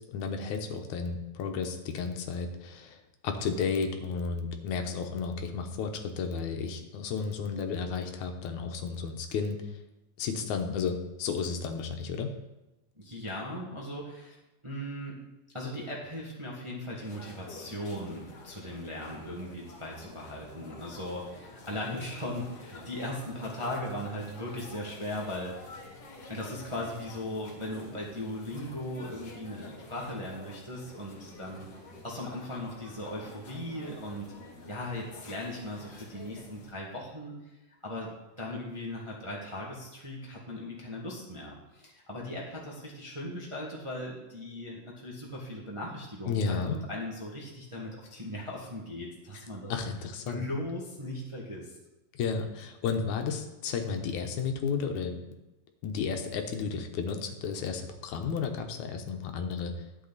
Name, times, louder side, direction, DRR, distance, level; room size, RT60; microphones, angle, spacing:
voice 1, 0.0-3.0 3.2-9.7 10.2-12.3 46.3-46.8 49.7-50.5 52.1-55.1 55.8-59.7, left 5 dB, 80° left, 5 dB, 2.3 m, -33 dB
voice 2, 12.9-14.3 14.6-15.2 15.5-25.8 26.3-31.7 32.0-34.3 34.7-37.4 37.8-38.1 38.4-49.7 50.2-51.8, left 1 dB, 15° right, -4 dB, 1.1 m, -38 dB
sound 1, 17.0-36.7, left 2 dB, 55° left, 2.6 m, -49 dB
12.0 x 8.0 x 4.1 m, 1.0 s
omnidirectional pair, 3.3 m